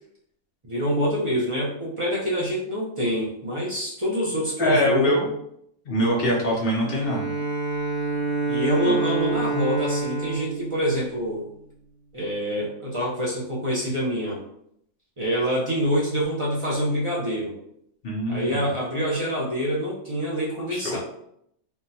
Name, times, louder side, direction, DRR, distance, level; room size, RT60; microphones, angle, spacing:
voice 1, 0.6-5.2 8.5-11.5 12.1-14.4 15.2-17.5 18.3-21.0, equal, 55° right, -6 dB, 0.3 m, -26 dB
voice 2, 4.6-5.3 5.9-7.2 8.8-9.0 18.0-18.6 20.7-21.0, equal, 50° left, -3 dB, 0.8 m, -23 dB
Bowed string instrument, 6.8-11.6, right 4 dB, 75° right, 1.3 m, -28 dB
3.6 x 2.2 x 2.7 m, 0.73 s
omnidirectional pair, 1.5 m